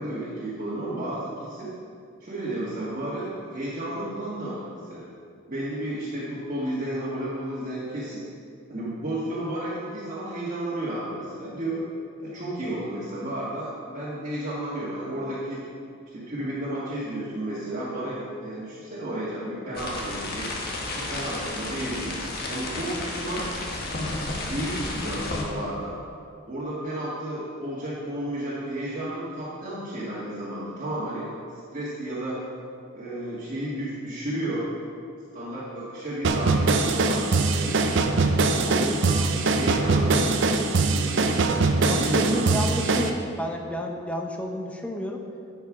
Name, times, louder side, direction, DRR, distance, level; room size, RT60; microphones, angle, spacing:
voice 1, 0.0-1.7 2.2-5.0 5.5-8.3 8.7-11.9 12.2-15.6 16.1-20.5 20.9-22.2 22.5-23.5 23.9-25.9 26.5-31.3 31.7-32.4 32.9-34.7 35.3-37.8 38.6-41.3 41.9-42.7, right 1 dB, 40° right, -9 dB, 1.7 m, -32 dB
sound 1, 19.7-25.4, left 2 dB, 50° left, 1.4 m, -32 dB
sound 2, 36.2-43.1, right 3 dB, 60° right, 0.6 m, -22 dB
voice 2, 41.9-45.2, equal, 5° left, 2 dB, 0.8 m, -31 dB
11.0 x 5.5 x 4.9 m, 2.3 s
head